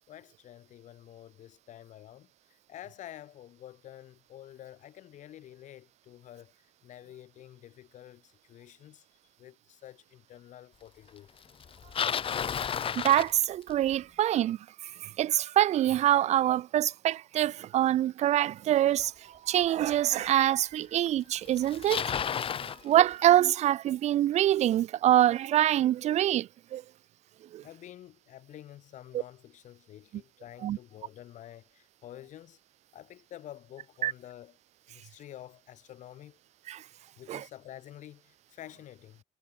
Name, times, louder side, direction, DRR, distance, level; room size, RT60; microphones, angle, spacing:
voice 1, 0.1-9.1 9.4-11.3 27.6-32.6 32.9-34.6 34.9-36.4 37.2-39.2, left 12 dB, 75° left, 3.6 m, -49 dB
Bicycle, 11.6-13.9 19.0-19.1 19.9-20.0 21.1-21.2 21.4-22.8, left 8 dB, 45° left, 1.4 m, -32 dB
voice 2, 13.0-14.6 14.8-19.1 19.4-22.0 22.8-26.8 27.5-27.6 30.6-30.8 34.0-34.1 36.7-36.8 37.3-37.4, right 12 dB, 60° right, 0.4 m, -25 dB
cardioid pair, 115°, 13 cm